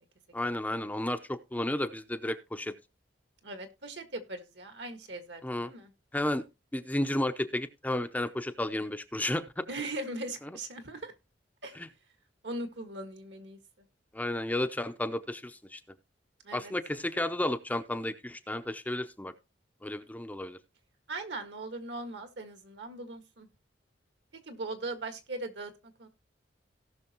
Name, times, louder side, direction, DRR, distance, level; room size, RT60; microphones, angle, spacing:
voice 1, 0.3-2.7 5.4-5.7 6.1-6.4 6.7-9.6 11.7-11.9 14.1-15.8 16.5-19.3 19.8-20.6, left 1 dB, 10° left, 8 dB, 0.6 m, -32 dB
voice 2, 3.4-5.9 9.7-11.1 11.6-11.8 12.4-13.6 16.4-16.7 21.1-23.5 24.5-25.7 26.0-26.1, right 2 dB, 65° right, 7 dB, 1.7 m, -39 dB
17.5 x 6.2 x 2.9 m, 0.27 s
head